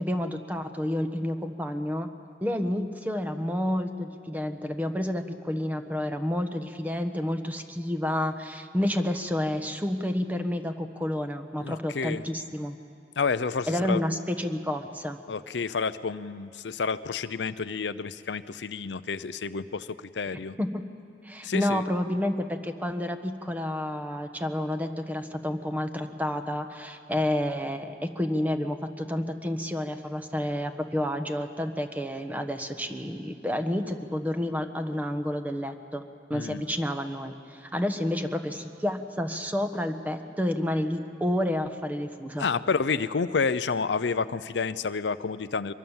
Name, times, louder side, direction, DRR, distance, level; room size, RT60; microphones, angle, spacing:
voice 1, 0.0-2.1 2.4-12.8 13.7-15.2 20.6-20.8 21.2-36.0 36.3-42.4, left 1 dB, 10° right, 6 dB, 1.2 m, -30 dB
voice 2, 11.6-12.2 13.2-14.0 15.3-20.5 21.4-21.8 36.3-36.6 42.4-45.7, left 5 dB, 85° left, 14 dB, 0.6 m, -29 dB
24.0 x 23.5 x 7.3 m, 2.5 s
head